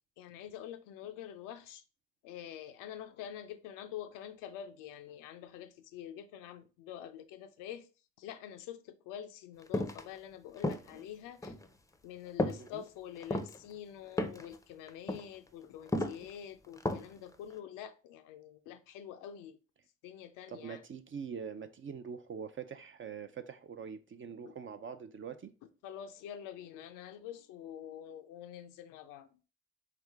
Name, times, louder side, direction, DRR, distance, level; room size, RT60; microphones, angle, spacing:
voice 1, 0.2-1.8 2.2-7.9 8.2-11.5 12.0-19.6 20.0-20.8 24.4-24.5 25.8-29.4, left 10 dB, 85° left, 0.5 m, -46 dB
sound 1, 9.7-10.0 10.6-11.0 11.4-11.7 12.4-12.7 13.2-13.6 14.2-14.6 14.9-15.2 15.9-16.3 16.8-17.2 17.5-17.6, left 1 dB, 10° left, 0.5 m, -33 dB
voice 2, 12.5-12.8 20.5-25.5, right 6 dB, 40° right, 0.5 m, -44 dB
3.7 x 3.3 x 3.4 m
supercardioid pair, 55°, 32 cm